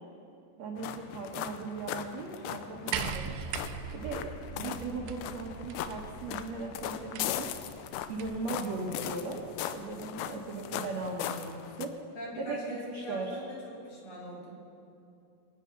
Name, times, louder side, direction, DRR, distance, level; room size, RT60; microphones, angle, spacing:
voice 1, 0.6-3.3 3.9-7.5 7.8-9.4 9.7-11.9 12.4-12.6 12.8-13.4, right 3 dB, 65° right, -1 dB, 1.7 m, -38 dB
sound 1, 0.8-11.9, left 10 dB, 90° left, 2.8 m, -39 dB
sound 2, 2.9-8.5 9.6-9.7, right 8 dB, 85° right, 2.7 m, -40 dB
voice 2, 12.1-14.5, equal, 55° left, -6 dB, 5.0 m, -42 dB
24.5 x 9.5 x 5.9 m, 2.6 s
omnidirectional pair, 5.0 m